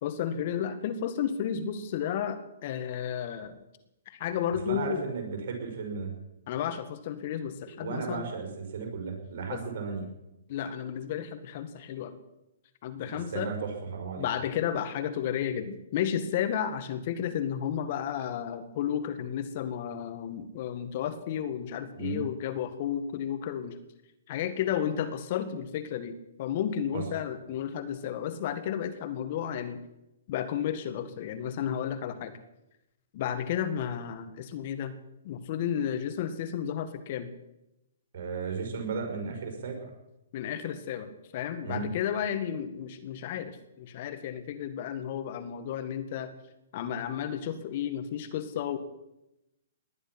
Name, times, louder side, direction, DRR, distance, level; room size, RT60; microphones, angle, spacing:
voice 1, 0.0-3.5 4.0-5.0 6.5-8.3 9.5-9.6 10.5-12.2 12.8-13.5 14.2-23.8 24.3-29.8 30.3-32.3 33.1-34.9 35.2-37.3 40.3-46.3 46.7-48.8, left 9 dB, 50° left, 10 dB, 1.7 m, -32 dB
voice 2, 4.7-6.1 7.8-10.1 13.1-14.3 21.9-22.2 26.9-27.0 38.1-39.9 41.6-41.9, right 5 dB, 55° right, 2 dB, 5.3 m, -35 dB
19.5 x 11.0 x 6.0 m, 0.91 s
hypercardioid pair, 130°, 0 cm